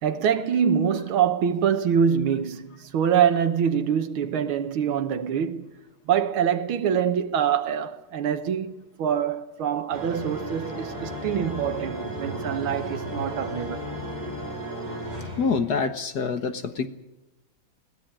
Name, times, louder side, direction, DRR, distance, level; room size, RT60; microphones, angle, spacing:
voice 1, 0.0-5.7 6.1-13.8, right 8 dB, 90° right, 2.0 m, -25 dB
sound 1, 9.9-15.9, right 1 dB, 20° right, 5.8 m, -34 dB
voice 2, 15.4-16.9, left 5 dB, 55° left, 1.6 m, -26 dB
22.0 x 17.0 x 9.0 m
omnidirectional pair, 2.2 m